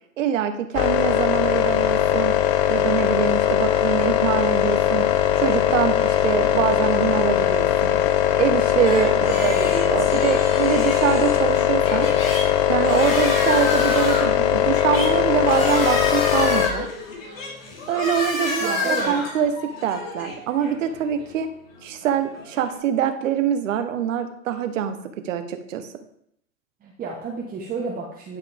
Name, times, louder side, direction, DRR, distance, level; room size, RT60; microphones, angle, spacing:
voice 1, 0.2-2.3 2.7-5.1 5.4-8.0 8.4-9.1 9.4-12.1 12.7-16.9 17.9-19.5 19.8-21.5 21.8-25.0 25.2-25.9, right 9 dB, 75° right, 8 dB, 1.2 m, -24 dB
sound 1, 0.7-16.7, left 11 dB, 40° left, 0.6 m, -20 dB
sound 2, 8.8-22.8, left 2 dB, 85° left, 3.1 m, -30 dB
voice 2, 9.1-9.6 18.6-19.2 26.8-28.4, right 4 dB, 20° right, -3 dB, 1.2 m, -31 dB
10.5 x 4.9 x 3.5 m, 0.69 s
hypercardioid pair, 120°, 39 cm